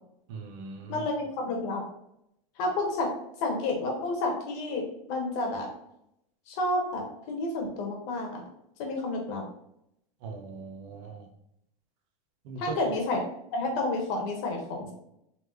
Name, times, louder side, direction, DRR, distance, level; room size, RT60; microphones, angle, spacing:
voice 1, 0.3-1.0 10.2-11.3 12.4-12.8, right 4 dB, 55° right, 3 dB, 0.9 m, -40 dB
voice 2, 0.9-1.8 2.6-3.1 3.4-5.7 6.5-8.4 8.8-9.4 12.6-13.2 13.5-14.9, left 2 dB, 50° left, 1 dB, 1.3 m, -30 dB
4.2 x 3.4 x 3.1 m, 0.79 s
supercardioid pair, 140°, 19 cm